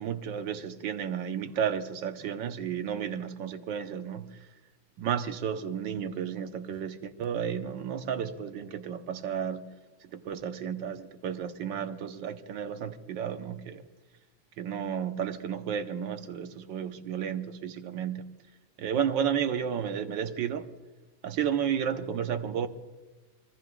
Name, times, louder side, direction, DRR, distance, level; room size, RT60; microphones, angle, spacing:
voice 1, 0.0-4.3 5.0-9.7 10.0-13.8 14.6-18.2 18.8-20.7 21.2-22.7, right 8 dB, 70° right, 1.5 m, -32 dB
26.0 x 21.0 x 2.3 m
omnidirectional pair, 2.2 m